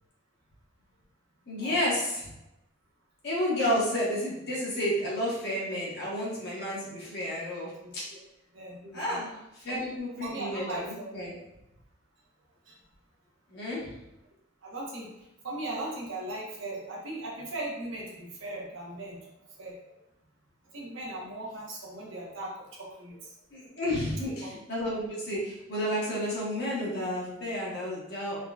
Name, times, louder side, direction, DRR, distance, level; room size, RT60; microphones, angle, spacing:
voice 1, 1.5-2.3 3.2-8.0 8.9-11.3 13.5-13.9 23.5-28.4, equal, 50° left, -6 dB, 1.0 m, -31 dB
voice 2, 7.8-8.2 8.5-9.2 9.7-9.9 10.2-11.1 12.7-12.8 14.6-15.1 15.4-19.3 19.6-19.9 20.7-23.3 24.4-24.6, right 2 dB, 70° right, -4 dB, 0.8 m, -38 dB
3.6 x 2.1 x 2.3 m, 0.90 s
head